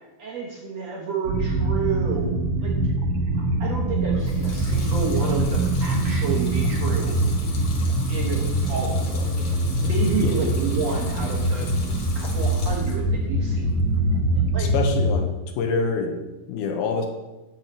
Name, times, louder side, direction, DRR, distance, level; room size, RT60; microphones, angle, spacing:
voice 1, 0.2-2.3 2.6-2.7 3.6-7.2 8.1-8.4 8.7-9.3 9.8-11.7 12.1-13.7 14.5-14.7, right 5 dB, 60° right, -2 dB, 2.0 m, -30 dB
sound 1, 1.3-15.1, right 1 dB, 75° right, 2.9 m, -23 dB
Water tap faucet / Sink (filling or washing) / Liquid, 4.1-13.1 13.5-14.2, left 3 dB, 55° left, 2.2 m, -40 dB
voice 2, 14.6-15.3 15.6-17.1, left 4 dB, 80° left, 5 dB, 2.7 m, -26 dB
8.8 x 5.5 x 7.1 m, 1.1 s
omnidirectional pair, 4.3 m